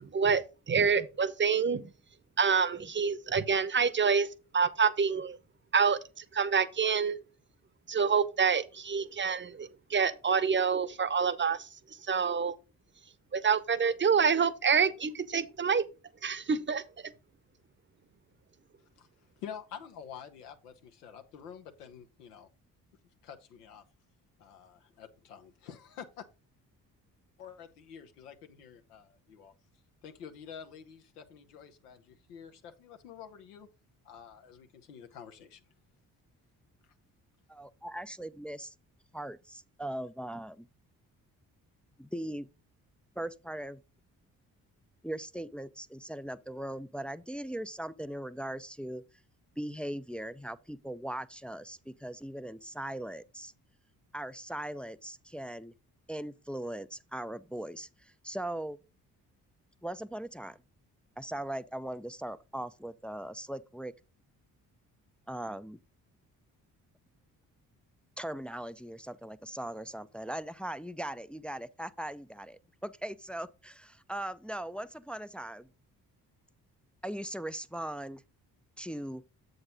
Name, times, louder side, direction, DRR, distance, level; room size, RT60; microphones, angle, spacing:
voice 1, 0.0-1.9 2.4-4.3 4.5-5.4 5.7-7.2 7.9-11.7 12.1-12.6 13.3-15.9 16.2-17.1, right 6 dB, 25° right, 0.7 m, -27 dB
voice 2, 19.4-22.5 23.2-23.8 24.4-26.2 27.4-29.5 30.0-33.7 34.0-35.6, left 8 dB, 90° left, 0.8 m, -48 dB
voice 3, 37.5-38.7 39.1-40.7 42.0-42.5 43.2-43.8 45.0-49.0 49.6-53.5 54.1-55.7 56.1-57.9 58.2-58.8 59.8-60.6 61.2-63.9 65.3-65.8 68.2-75.7 77.0-78.2 78.8-79.2, right 1 dB, 5° left, 0.3 m, -39 dB
7.7 x 3.9 x 5.1 m
hypercardioid pair, 40°, 45 cm